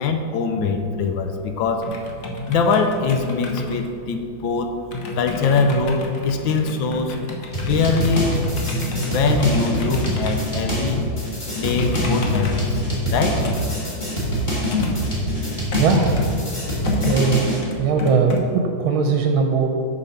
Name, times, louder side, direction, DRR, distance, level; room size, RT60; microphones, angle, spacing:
voice 1, 0.0-1.9 2.5-4.7 5.2-7.1 7.7-8.3 9.1-11.0 11.6-12.8 13.1-13.4, left 4 dB, 75° left, 6 dB, 1.4 m, -22 dB
sound 1, 0.6-18.4, left 2 dB, 50° left, 1.1 m, -30 dB
sound 2, 7.5-17.6, equal, 25° left, 1.7 m, -25 dB
voice 2, 15.7-16.2 17.0-17.4 17.8-19.7, right 5 dB, 85° right, 4 dB, 1.5 m, -19 dB
7.1 x 6.4 x 5.6 m, 2.5 s
omnidirectional pair, 2.2 m